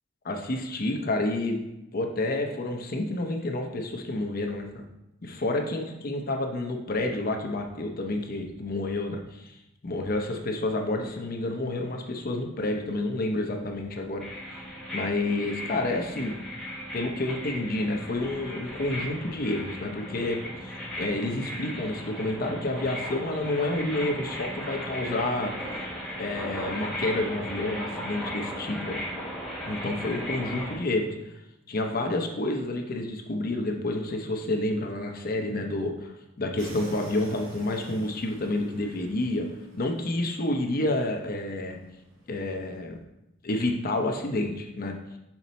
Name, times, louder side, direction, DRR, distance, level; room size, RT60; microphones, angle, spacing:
voice 1, 0.3-1.6 1.9-4.8 5.2-9.6 9.8-14.2 14.5-14.6 14.9-16.3 16.9-25.8 26.2-29.0 29.7-31.4 31.7-39.5 39.7-41.8 42.3-43.0 43.4-45.0, left 2 dB, 50° left, 3 dB, 0.7 m, -29 dB
sound 1, 14.2-30.7, equal, ahead, 1.4 m, -36 dB
sound 2, 36.6-42.8, right 2 dB, 85° right, 1.2 m, -49 dB
5.9 x 4.0 x 4.2 m, 0.89 s
head